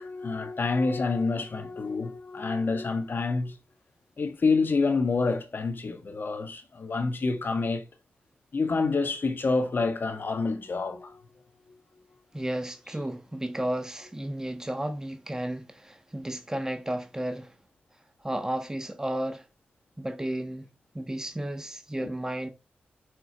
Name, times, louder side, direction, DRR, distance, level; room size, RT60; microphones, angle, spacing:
voice 1, 0.0-3.6 4.2-7.8 8.5-11.2 22.0-22.1, left 4 dB, 55° left, 1.5 m, -27 dB
voice 2, 12.3-17.5 18.2-19.4 20.0-20.7 20.9-22.5, right 1 dB, 15° right, 1.2 m, -33 dB
6.4 x 4.5 x 4.5 m
supercardioid pair, 40°, 4 cm